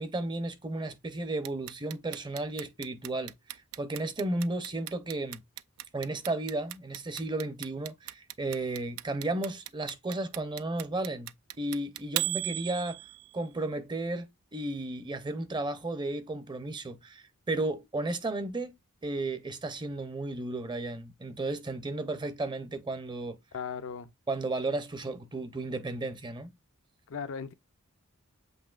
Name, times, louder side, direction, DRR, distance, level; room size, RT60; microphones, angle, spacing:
voice 1, 0.0-3.3 3.8-5.4 5.9-11.3 11.6-13.0 13.3-18.7 19.0-23.4 24.3-26.5, right 2 dB, 20° right, 0.6 m, -34 dB
Clock, 1.4-13.4, right 16 dB, 70° right, 0.3 m, -36 dB
voice 2, 23.5-24.1 27.1-27.5, left 6 dB, 65° left, 0.5 m, -37 dB
7.8 x 2.7 x 2.4 m
head